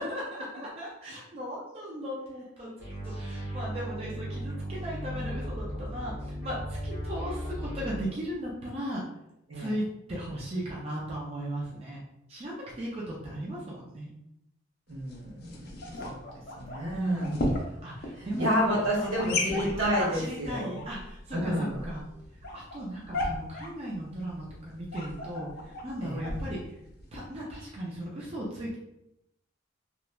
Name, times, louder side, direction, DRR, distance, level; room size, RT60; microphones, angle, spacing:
voice 1, 0.0-2.7 3.0-9.0 9.5-9.8 10.1-12.0 12.3-14.1 16.9-17.4 17.8-19.3 19.6-22.0 22.5-26.7 27.1-28.8, right 1 dB, 30° right, -5 dB, 0.4 m, -36 dB
sound 1, 2.8-8.1, equal, 10° right, 0.8 m, -36 dB
sound 2, 14.9-27.3, left 2 dB, 50° left, 0.5 m, -37 dB
voice 2, 14.9-16.2 16.5-17.3 18.2-20.8 21.3-21.8 26.0-26.3, equal, 80° right, -4 dB, 1.1 m, -30 dB
3.0 x 2.1 x 2.3 m, 0.84 s
head